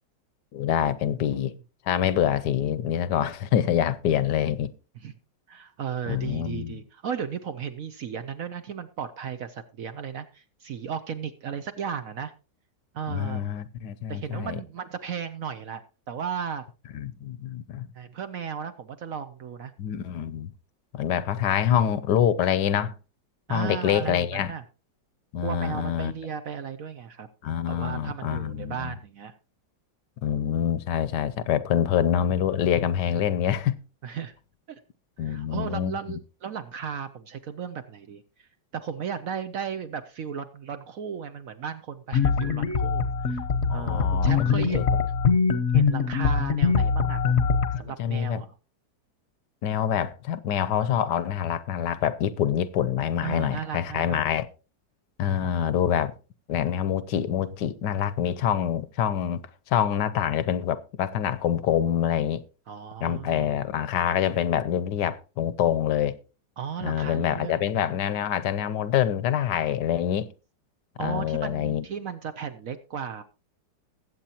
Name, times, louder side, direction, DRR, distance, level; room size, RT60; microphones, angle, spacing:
voice 1, 0.5-1.5 1.9-4.7 6.1-6.8 13.1-14.6 16.9-17.9 19.8-20.5 20.9-23.0 23.5-24.5 25.3-26.1 27.4-28.9 30.2-33.8 35.2-36.0 43.7-44.8 47.7-48.4 49.6-54.5 55.2-56.1 56.5-59.4 59.7-62.4 63.0-66.2 66.8-70.3 71.0-71.8, left 9 dB, 70° left, 1.2 m, -26 dB
voice 2, 5.5-12.3 12.9-13.4 14.1-16.7 17.9-19.7 23.5-24.6 25.4-27.3 27.7-29.3 33.0-33.4 34.0-34.3 34.7-34.8 35.2-38.5 38.7-43.4 43.7-45.1 45.7-47.3 47.8-48.6 53.2-54.2 55.2-55.5 62.7-63.6 66.6-67.6 71.0-73.2, right 7 dB, 60° right, 0.9 m, -35 dB
sound 1, 42.1-47.8, left 5 dB, 45° left, 0.9 m, -23 dB
20.5 x 8.0 x 2.9 m
omnidirectional pair, 2.0 m